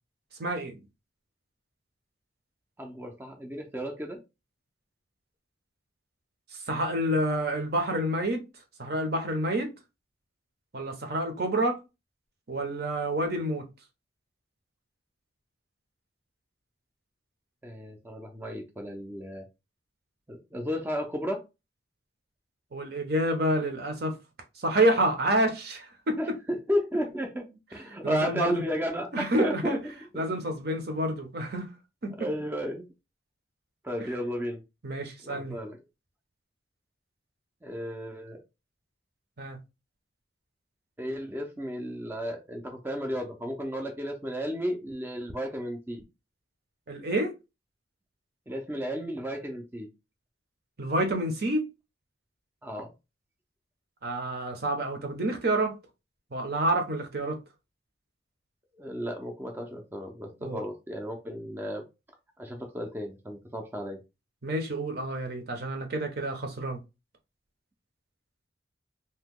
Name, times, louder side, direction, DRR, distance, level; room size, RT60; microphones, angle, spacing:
voice 1, 0.4-0.8 6.7-8.4 8.8-9.7 10.7-11.8 12.5-13.6 22.7-24.1 24.6-26.2 28.0-28.6 29.1-29.8 30.2-31.7 32.0-32.1 34.8-35.6 39.4-39.6 46.9-47.3 50.8-51.6 54.0-55.7 56.3-57.4 60.4-60.6 64.4-66.8, right 1 dB, 55° right, 0.7 m, -28 dB
voice 2, 2.8-4.2 17.6-19.5 20.3-21.4 26.2-30.2 30.7-30.8 32.2-32.9 33.8-34.6 35.2-35.8 37.6-38.4 41.0-46.0 48.5-49.9 52.6-52.9 58.8-61.8 62.4-64.0, equal, 10° right, 0.4 m, -33 dB
2.8 x 2.2 x 3.6 m
head